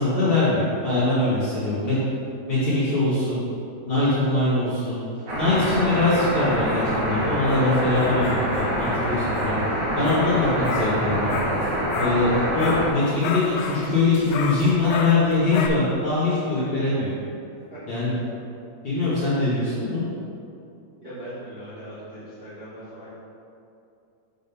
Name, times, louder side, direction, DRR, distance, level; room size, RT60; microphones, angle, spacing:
voice 1, 0.0-2.0 2.5-3.4 3.9-5.0 5.3-9.6 10.0-11.5 12.0-17.1 17.9-18.1 18.8-20.0, left 2 dB, 40° left, -12 dB, 2.2 m, -22 dB
sound 1, 5.3-12.3 12.6-15.7, left 5 dB, 80° left, 2.2 m, -33 dB
sound 2, 5.3-12.9, equal, 60° right, 1.2 m, -26 dB
voice 2, 16.6-16.9 17.7-17.8 21.0-23.1, right 1 dB, 45° right, -13 dB, 1.5 m, -40 dB
8.5 x 4.0 x 5.4 m, 2.6 s
omnidirectional pair, 4.5 m